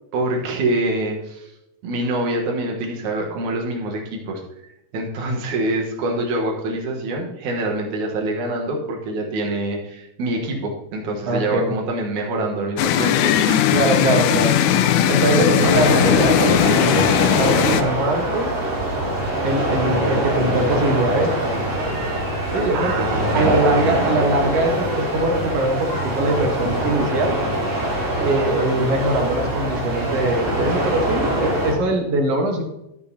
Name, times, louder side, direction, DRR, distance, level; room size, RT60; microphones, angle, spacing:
voice 1, 0.1-1.5 1.8-4.4 4.9-13.7 22.4-24.1, right 2 dB, 80° right, 0 dB, 2.7 m, -25 dB
voice 2, 11.3-11.7 13.7-14.5 15.1-18.5 19.4-21.6 22.5-23.1 23.3-27.4 28.2-32.6, right 1 dB, 60° right, 2 dB, 2.3 m, -22 dB
sound 1, 12.8-17.8, left 10 dB, 85° left, 1.9 m, -18 dB
sound 2, 15.6-31.7, right 1 dB, 30° right, 1.9 m, -23 dB
13.0 x 7.0 x 2.8 m, 0.86 s
omnidirectional pair, 3.4 m